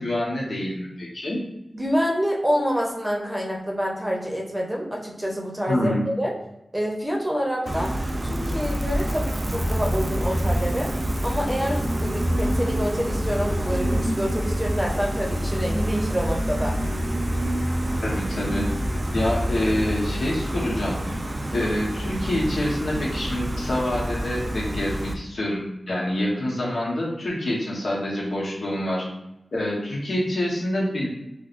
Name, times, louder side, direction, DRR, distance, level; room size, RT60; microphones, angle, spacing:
voice 1, 0.0-1.4 5.7-6.0 18.0-18.7 19.1-21.0 21.5-29.0 29.5-31.1, left 1 dB, 80° left, -4 dB, 1.1 m, -26 dB
voice 2, 1.7-6.3 6.7-7.9 8.2-10.9 11.2-16.7, equal, 15° right, -2 dB, 0.8 m, -27 dB
Gull seagull, 7.7-25.1, equal, 40° right, 0.4 m, -26 dB
4.7 x 2.2 x 2.5 m, 0.89 s
wide cardioid pair, 80°, 0 cm